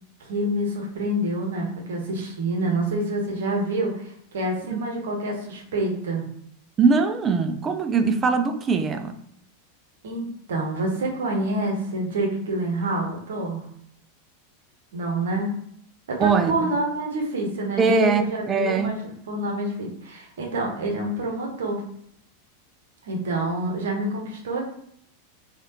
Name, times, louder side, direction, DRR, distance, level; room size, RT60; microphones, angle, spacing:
voice 1, 0.2-6.3 10.0-13.7 14.9-15.6 16.1-21.8 23.0-24.6, right 1 dB, 65° right, 0.9 m, -27 dB
voice 2, 6.8-9.2 16.2-16.8 17.8-18.9, right 4 dB, 25° right, 0.3 m, -21 dB
3.1 x 2.4 x 2.9 m
figure-of-eight pair, 90°, 0 cm